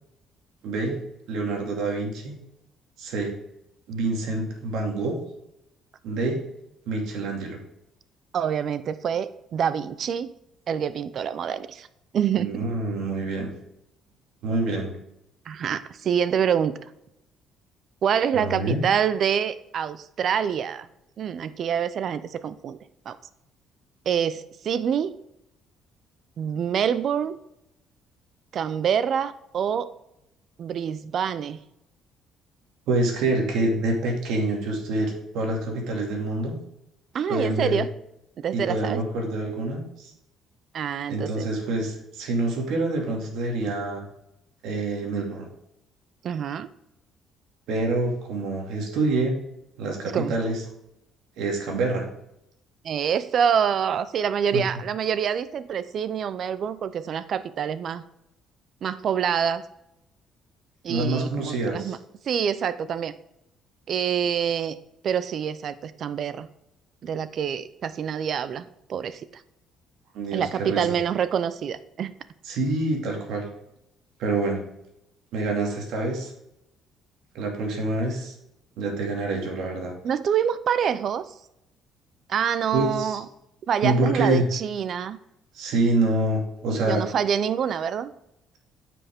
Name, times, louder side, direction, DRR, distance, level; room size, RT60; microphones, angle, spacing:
voice 1, 0.6-1.0 1.3-2.3 3.0-3.3 3.9-5.2 6.0-6.4 6.9-7.6 12.4-13.5 14.4-14.9 18.3-18.8 32.9-36.6 37.3-37.8 38.5-40.1 41.1-44.0 44.6-45.5 47.7-49.3 49.8-50.6 51.4-52.1 54.5-54.6 60.9-61.9 70.1-70.8 72.5-73.5 74.2-74.6 75.3-76.3 77.3-78.3 78.8-79.9 82.7-83.2 83.8-84.4 85.5-87.0, right 2 dB, 75° right, 1 dB, 2.5 m, -26 dB
voice 2, 8.3-10.3 10.7-11.9 12.1-12.6 15.5-16.8 18.0-20.9 21.2-22.8 23.1-23.2 24.1-25.1 26.4-27.4 28.5-29.9 30.6-31.6 37.1-37.9 38.4-39.0 40.7-41.5 46.2-46.7 50.1-50.4 52.8-58.0 58.8-59.7 60.8-62.0 62.2-63.1 63.9-64.8 65.0-66.5 67.0-69.3 70.3-72.1 80.0-81.3 82.3-83.2 83.7-85.2 86.7-88.1, right 8 dB, 50° right, 14 dB, 0.6 m, -26 dB
9.6 x 5.9 x 3.6 m, 0.82 s
cardioid pair, 135°, 0 cm